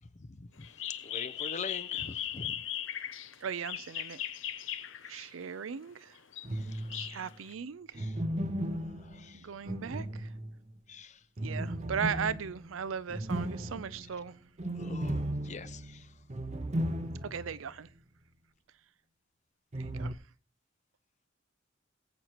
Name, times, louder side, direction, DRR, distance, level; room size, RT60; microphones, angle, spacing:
voice 1, 0.3-0.7 1.0-2.6 5.1-5.2 6.5-6.9 8.0-8.2 8.8-9.5 10.9-11.2 14.8-16.1, left 4 dB, 35° left, 0.7 m, -44 dB
sound 1, 0.6-5.4 6.2-7.5, left 11 dB, 75° left, 0.7 m, -38 dB
voice 2, 3.4-4.2 5.1-6.2 6.9-8.0 9.3-10.3 11.4-14.3 17.2-17.9 19.8-20.2, right 7 dB, 85° right, 0.5 m, -37 dB
sound 2, 6.4-7.2 7.9-10.7 11.4-17.6 17.9-18.0 19.7-20.1, right 1 dB, 35° right, 0.8 m, -36 dB
21.5 x 8.1 x 3.0 m
head